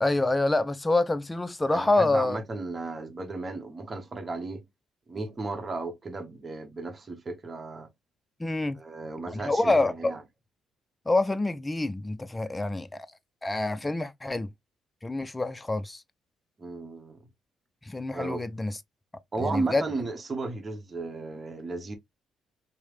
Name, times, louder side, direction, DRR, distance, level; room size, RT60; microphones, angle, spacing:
voice 1, 0.0-2.4 8.4-8.8 9.3-10.1 11.1-12.9 13.4-14.5 15.0-16.0 17.8-18.8 19.4-19.9, left 2 dB, 20° left, 0.4 m, -26 dB
voice 2, 1.7-4.7 5.1-7.9 8.7-10.2 16.6-17.2 18.1-18.4 19.3-22.0, right 3 dB, 35° right, 0.9 m, -34 dB
3.1 x 2.0 x 2.4 m
hypercardioid pair, 50°, 0 cm